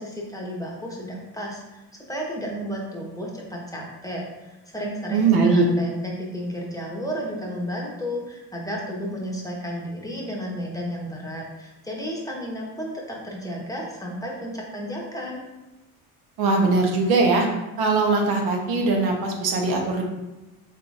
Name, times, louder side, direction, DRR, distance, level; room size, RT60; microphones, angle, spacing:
voice 1, 0.0-1.6 2.1-15.4, equal, 10° left, -2 dB, 0.9 m, -32 dB
voice 2, 5.1-5.6 16.4-17.5 17.8-20.0, right 3 dB, 75° right, 1 dB, 0.9 m, -20 dB
4.1 x 3.7 x 2.4 m, 1.0 s
supercardioid pair, 90°, 38 cm